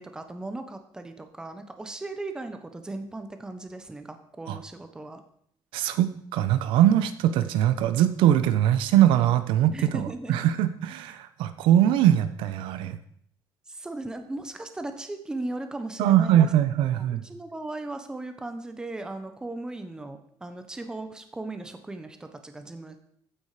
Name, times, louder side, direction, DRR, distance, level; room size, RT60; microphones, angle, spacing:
voice 1, 0.0-5.2 9.7-10.5 13.7-16.5 16.9-23.0, right 2 dB, 10° right, 8 dB, 1.1 m, -37 dB
voice 2, 5.7-13.0 16.0-17.2, right 11 dB, 80° right, 12 dB, 1.1 m, -22 dB
14.5 x 10.0 x 5.1 m, 0.67 s
cardioid pair, 170°, 9 cm